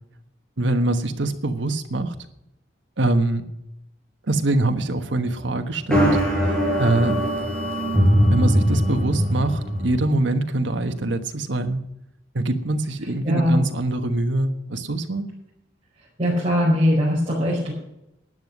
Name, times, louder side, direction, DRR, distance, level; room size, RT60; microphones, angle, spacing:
voice 1, 0.6-2.2 3.0-3.4 4.3-7.2 8.3-11.8 12.3-15.3, right 2 dB, 75° right, 7 dB, 1.3 m, -24 dB
metallic sounds, 5.9-10.0, equal, 5° left, 4.8 m, -21 dB
voice 2, 13.2-13.6 16.0-17.7, equal, 30° right, -8 dB, 5.1 m, -21 dB
12.5 x 9.7 x 6.1 m, 0.85 s
head